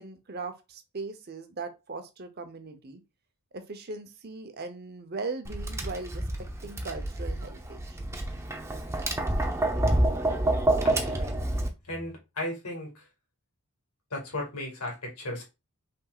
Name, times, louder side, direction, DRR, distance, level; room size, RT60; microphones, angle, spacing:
voice 1, 0.0-3.0 3.5-8.0, right 3 dB, 45° right, 0.8 m, -39 dB
Tap, 5.4-11.7, right 1 dB, 10° right, 0.6 m, -28 dB
voice 2, 10.8-11.4 11.8-13.1 14.1-15.4, left 1 dB, 80° left, 2.1 m, -36 dB
5.7 x 3.6 x 2.4 m
head